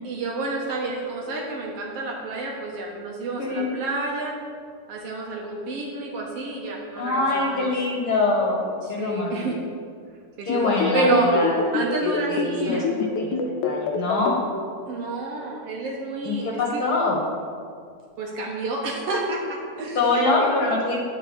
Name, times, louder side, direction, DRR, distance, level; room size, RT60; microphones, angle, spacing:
voice 1, 0.0-4.4 4.9-7.7 8.8-9.5 10.4-10.7 10.9-11.3 11.7-12.9 14.9-16.5 16.7-16.8 18.2-20.5, right 3 dB, 65° right, -1 dB, 1.9 m, -29 dB
voice 2, 7.0-9.4 10.5-14.4 16.2-17.2 20.0-21.0, left 3 dB, 55° left, -2 dB, 1.9 m, -24 dB
sound 1, 10.5-14.3, left 5 dB, 90° left, 2.2 m, -25 dB
11.0 x 4.4 x 7.9 m, 2.2 s
omnidirectional pair, 3.3 m